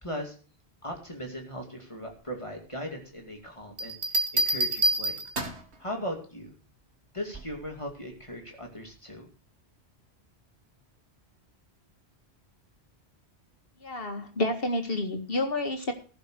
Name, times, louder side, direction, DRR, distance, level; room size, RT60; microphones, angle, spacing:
voice 1, 0.0-0.4 0.8-4.0 4.3-5.2 5.8-6.5 7.1-9.3, equal, 30° left, 1 dB, 2.5 m, -38 dB
Bell, 3.8-5.7 7.3-7.7, right 1 dB, 80° right, 1.9 m, -27 dB
voice 2, 13.8-15.9, left 1 dB, 60° left, 5 dB, 2.2 m, -29 dB
15.5 x 6.8 x 6.3 m, 0.39 s
omnidirectional pair, 1.1 m